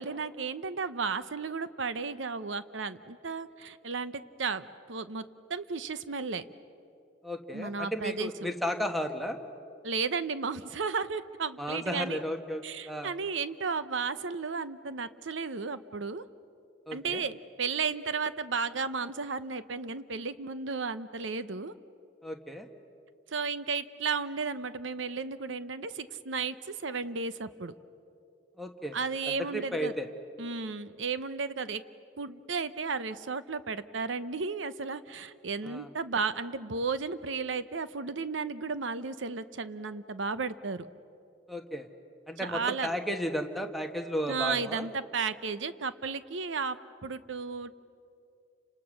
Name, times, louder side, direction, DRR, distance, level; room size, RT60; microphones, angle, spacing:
voice 1, 0.0-6.5 7.5-8.3 9.8-12.2 12.6-16.2 16.9-21.7 23.3-27.7 28.9-29.9 30.4-31.8 32.2-40.9 42.4-42.9 44.3-47.7, right 4 dB, 80° right, 13 dB, 0.9 m, -34 dB
voice 2, 7.2-9.4 11.6-13.1 16.9-17.2 22.2-22.7 28.6-29.0 29.5-30.1 35.6-35.9 41.5-41.9 42.3-44.9, equal, ahead, 5 dB, 1.4 m, -34 dB
30.0 x 26.5 x 6.4 m, 2.7 s
head